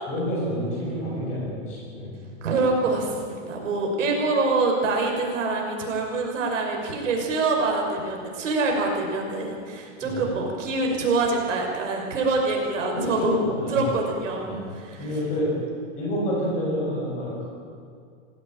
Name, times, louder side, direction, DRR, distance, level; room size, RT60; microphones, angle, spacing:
voice 1, 0.1-2.2 10.0-10.3 12.9-13.9 14.4-15.5 16.0-17.5, equal, 20° left, -3 dB, 6.5 m, -28 dB
voice 2, 2.4-13.4 13.7-15.1, right 3 dB, 75° right, 1 dB, 5.8 m, -25 dB
20.5 x 16.0 x 8.9 m, 2.3 s
supercardioid pair, 180°, 38 cm